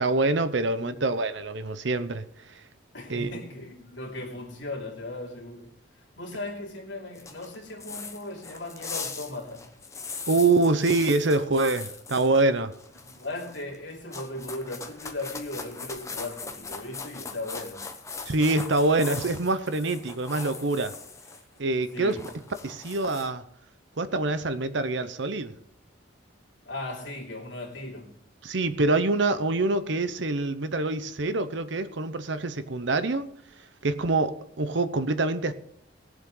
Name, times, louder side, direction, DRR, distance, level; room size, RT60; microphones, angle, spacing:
voice 1, 0.0-2.2 3.1-3.3 10.3-12.7 18.3-20.9 21.6-22.2 22.6-23.4 24.0-25.5 28.4-33.3 33.8-35.5, right 2 dB, 70° right, 0.8 m, -25 dB
voice 2, 2.9-9.7 13.0-17.8 21.9-22.4 26.6-28.2, left 2 dB, 70° left, 3.0 m, -37 dB
sound 1, 7.2-12.4 12.7-13.8 14.1-21.4 21.7-23.3, left 4 dB, 15° left, 1.0 m, -40 dB
20.0 x 7.4 x 3.9 m
head